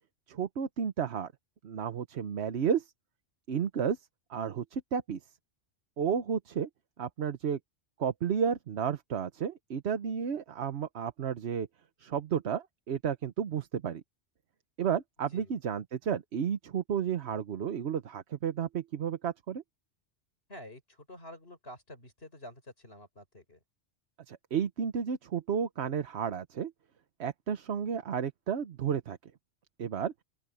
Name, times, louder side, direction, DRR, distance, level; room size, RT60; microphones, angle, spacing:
voice 1, 0.3-1.3 1.6-2.9 3.5-4.0 4.3-5.2 6.0-6.7 7.0-7.6 8.0-11.7 12.0-14.0 14.8-19.6 24.3-26.7 27.2-29.2 29.8-30.1, right 7 dB, 65° right, 1.1 m, -32 dB
voice 2, 20.5-23.6, left 1 dB, 55° left, 6.3 m, -49 dB
open air
omnidirectional pair, 1.2 m